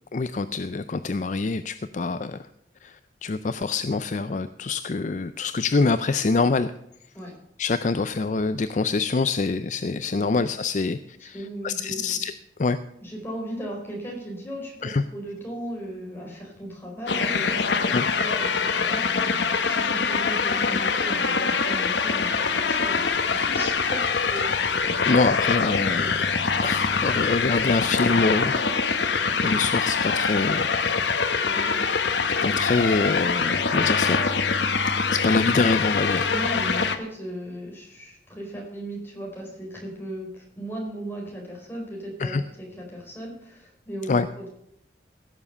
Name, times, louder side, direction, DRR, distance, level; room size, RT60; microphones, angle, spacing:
voice 1, 0.1-2.4 2.8-6.7 7.6-11.4 11.6-12.3 12.6-12.8 14.8-15.0 17.9-18.1 25.0-26.2 26.6-29.1 29.4-30.7 32.4-34.2 35.1-36.3 42.2-42.4 44.1-44.3, left 3 dB, 40° left, 12 dB, 0.4 m, -25 dB
voice 2, 11.2-12.2 13.0-24.6 25.9-26.2 31.4-31.9 36.3-44.5, right 1 dB, 10° left, -2 dB, 4.7 m, -37 dB
sound 1, 17.1-37.0, left 5 dB, 80° left, 1.1 m, -24 dB
sound 2, 22.6-28.0, left 1 dB, 60° left, 6.4 m, -46 dB
16.5 x 7.2 x 6.9 m, 0.75 s
head